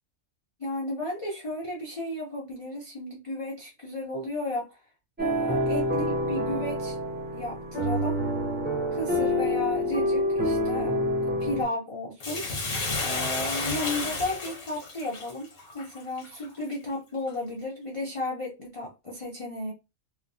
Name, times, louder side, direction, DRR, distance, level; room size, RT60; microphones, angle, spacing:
voice 1, 0.6-4.8 5.2-7.0 7.3-8.2 8.9-10.9 11.2-12.8 13.0-15.5 15.7-19.7, left 1 dB, 35° left, 0.6 m, -33 dB
sound 1, 5.2-11.6, equal, 10° right, 0.7 m, -27 dB
Bathtub (filling or washing), 12.2-16.7 17.3-17.4, left 3 dB, 70° left, 1.3 m, -32 dB
3.1 x 2.1 x 2.6 m
omnidirectional pair, 1.3 m